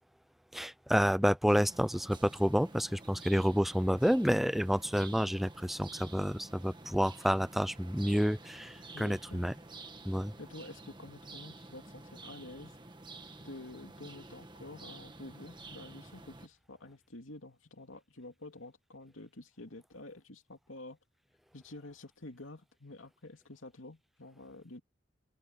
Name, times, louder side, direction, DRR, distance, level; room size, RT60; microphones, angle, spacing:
voice 1, 0.5-9.5 10.1-10.3, equal, ahead, 0.3 m, -29 dB
sound 1, 1.5-16.5, right 2 dB, 25° right, 1.6 m, -50 dB
voice 2, 8.9-9.5 10.4-12.8 13.4-21.0 21.5-24.8, left 2 dB, 90° left, 2.9 m, -49 dB
open air
head